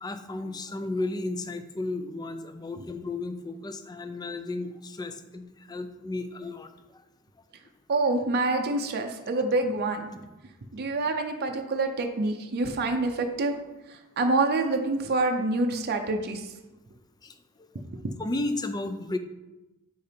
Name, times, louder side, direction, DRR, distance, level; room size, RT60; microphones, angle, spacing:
voice 1, 0.0-6.7 17.2-17.3 17.6-17.7 18.2-19.2, left 2 dB, 20° left, 9 dB, 0.3 m, -33 dB
voice 2, 7.9-10.1 10.7-13.5 13.9-16.5, right 2 dB, 45° right, 4 dB, 0.5 m, -26 dB
7.7 x 5.0 x 2.8 m, 1.0 s
head